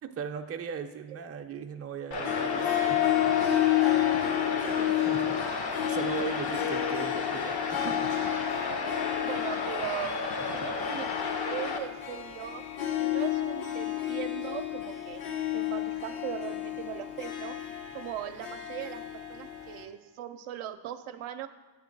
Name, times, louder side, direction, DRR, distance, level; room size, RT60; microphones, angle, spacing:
voice 1, 0.0-3.3 4.8-8.1 10.5-10.7, right 7 dB, 30° right, 6 dB, 0.5 m, -39 dB
sound 1, 2.1-11.8, left 4 dB, 50° left, 0.8 m, -33 dB
Harp, 2.2-19.8, left 12 dB, 70° left, 1.1 m, -31 dB
voice 2, 5.7-6.3 8.9-12.6 13.0-15.2 15.5-17.6 17.9-21.5, right 11 dB, 80° right, 9 dB, 0.5 m, -39 dB
8.0 x 3.1 x 5.2 m, 1.3 s
cardioid pair, 75°, 48 cm